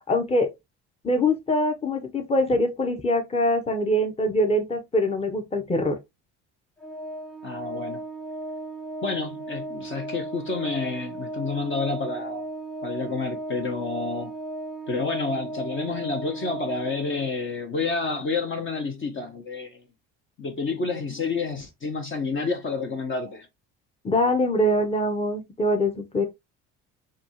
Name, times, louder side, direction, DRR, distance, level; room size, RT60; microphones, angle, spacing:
voice 1, 0.1-0.5 1.0-5.9 24.0-26.2, left 1 dB, 20° left, 1.1 m, -23 dB
Organ, 6.8-17.5, right 2 dB, ahead, 0.7 m, -36 dB
voice 2, 7.4-8.0 9.0-12.4 12.8-14.3 14.9-19.8 20.4-23.5, left 4 dB, 35° left, 1.0 m, -29 dB
5.1 x 2.5 x 3.0 m
supercardioid pair, 80°, 34 cm